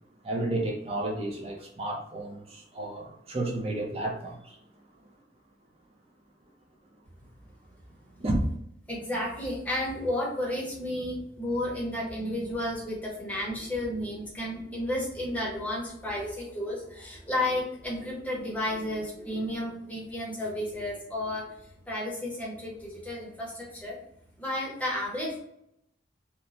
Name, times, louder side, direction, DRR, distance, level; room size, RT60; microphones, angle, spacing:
voice 1, 0.2-4.4 8.2-8.5, right 1 dB, 30° right, 0.5 m, -31 dB
voice 2, 8.9-24.0 24.4-25.4, left 1 dB, 10° left, 0.7 m, -32 dB
3.0 x 2.1 x 2.5 m
head